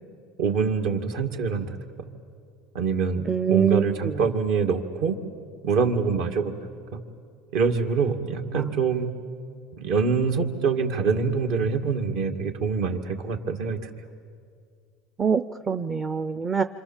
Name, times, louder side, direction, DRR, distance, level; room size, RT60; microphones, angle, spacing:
voice 1, 0.4-1.8 2.7-5.2 5.6-6.5 6.9-7.0 7.5-9.1 9.8-13.9, right 5 dB, 65° right, 5 dB, 2.1 m, -25 dB
voice 2, 3.3-4.1 8.5-8.6 15.2-16.6, right 7 dB, 25° right, 10 dB, 0.6 m, -24 dB
27.0 x 26.5 x 7.3 m, 2.2 s
supercardioid pair, 130°, 0 cm